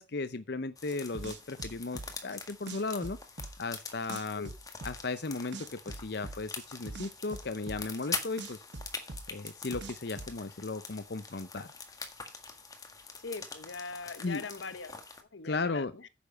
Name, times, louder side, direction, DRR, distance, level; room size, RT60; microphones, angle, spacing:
voice 1, 0.0-3.2 3.6-4.5 4.8-8.6 9.3-11.7 14.2-14.4 15.4-15.9, left 3 dB, 60° left, 0.7 m, -36 dB
sound 1, 0.8-15.2, left 4 dB, 20° left, 1.7 m, -44 dB
sound 2, 0.9-2.4 2.7-3.8 4.1-5.2 5.5-8.1 8.4-10.3, right 2 dB, 70° right, 1.3 m, -43 dB
voice 2, 13.2-16.1, left 4 dB, 85° left, 1.1 m, -42 dB
9.8 x 7.1 x 5.3 m
head